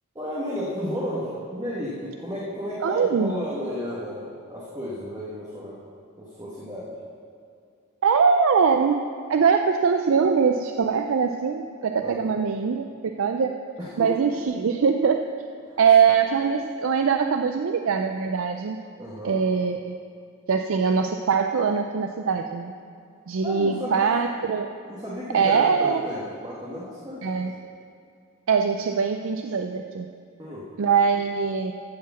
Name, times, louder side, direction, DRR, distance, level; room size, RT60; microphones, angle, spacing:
voice 1, 0.1-5.8 6.2-6.9 12.0-12.3 13.8-14.2 15.7-15.8 19.0-19.4 23.4-24.1 24.9-27.3 30.4-30.7, left 1 dB, 15° right, -7 dB, 1.4 m, -33 dB
voice 2, 2.8-3.3 8.0-13.5 14.0-15.2 15.8-18.8 19.2-20.0 20.5-22.7 23.3-24.7 25.3-26.0 27.2-27.5 28.5-30.1 30.8-31.7, right 6 dB, 65° right, 5 dB, 0.4 m, -22 dB
14.0 x 4.8 x 7.0 m, 2.4 s
head